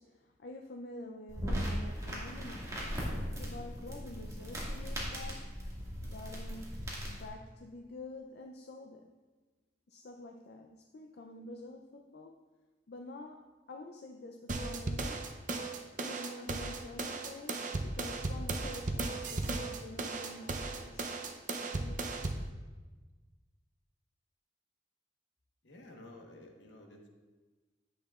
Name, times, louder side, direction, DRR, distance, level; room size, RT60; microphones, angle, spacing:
voice 1, 0.0-2.7 3.4-5.5 6.0-9.1 9.9-12.4 12.9-15.3 16.0-22.5, left 2 dB, 60° left, 2 dB, 0.5 m, -48 dB
sound 1, 1.3-7.3, equal, 20° right, 1.8 m, -38 dB
sound 2, 14.5-22.5, right 3 dB, 45° right, 0.6 m, -36 dB
voice 2, 25.6-27.1, left 1 dB, 75° left, 2 dB, 1.2 m, -52 dB
10.0 x 8.1 x 2.4 m, 1.3 s
head